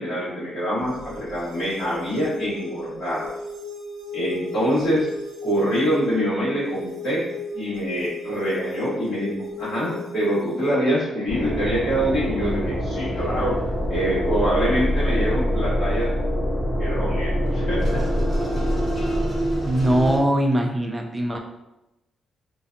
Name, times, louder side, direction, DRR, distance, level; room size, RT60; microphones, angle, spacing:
voice 1, 0.0-3.3 4.1-5.1 5.4-7.3 7.5-13.6 13.9-16.1 16.8-18.1, equal, 55° left, -14 dB, 1.2 m, -25 dB
sound 1, 0.8-10.8, left 1 dB, 75° right, 0.5 m, -36 dB
sound 2, 11.3-20.2, equal, 25° left, 0.9 m, -24 dB
voice 2, 19.6-21.4, right 1 dB, 10° right, 2 dB, 0.3 m, -21 dB
2.5 x 2.2 x 2.5 m, 0.93 s
cardioid pair, 125°, 0 cm